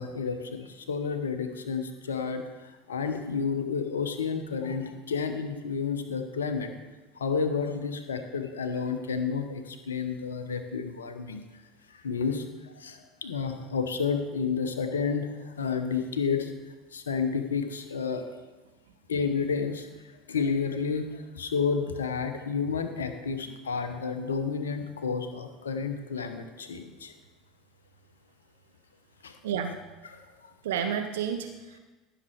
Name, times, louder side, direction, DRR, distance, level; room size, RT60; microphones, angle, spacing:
voice 1, 0.0-6.7 7.2-11.4 11.9-16.5 16.9-18.2 19.1-19.9 20.3-27.1 29.2-29.3 30.1-30.5, left 5 dB, 75° left, 7 dB, 1.0 m, -31 dB
voice 2, 29.4-29.8 30.6-31.8, right 8 dB, 65° right, 7 dB, 0.6 m, -31 dB
15.0 x 6.8 x 4.7 m, 1.2 s
figure-of-eight pair, 70°, 0 cm